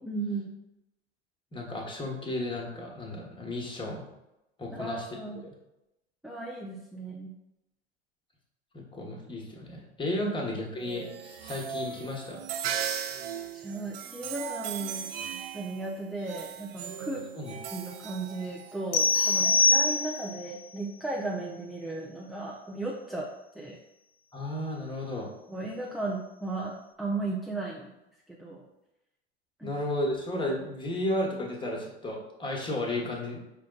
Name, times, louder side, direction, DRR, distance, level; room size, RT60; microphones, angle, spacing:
voice 1, 0.0-0.5 4.7-5.4 6.2-7.3 10.2-10.3 13.5-15.2 15.5-17.2 17.7-23.3 23.5-23.8 25.5-27.9 28.3-28.6 29.6-29.7, right 2 dB, ahead, -3 dB, 0.4 m, -35 dB
voice 2, 1.5-4.0 4.6-5.0 8.7-12.4 17.3-17.5 24.3-25.3 29.6-33.4, left 1 dB, 15° left, -1 dB, 1.1 m, -33 dB
sound 1, 10.8-20.3, right 8 dB, 60° right, 0.5 m, -38 dB
sound 2, 18.9-20.5, left 3 dB, 70° left, 0.7 m, -23 dB
5.0 x 2.2 x 3.8 m, 0.91 s
hypercardioid pair, 85°, 33 cm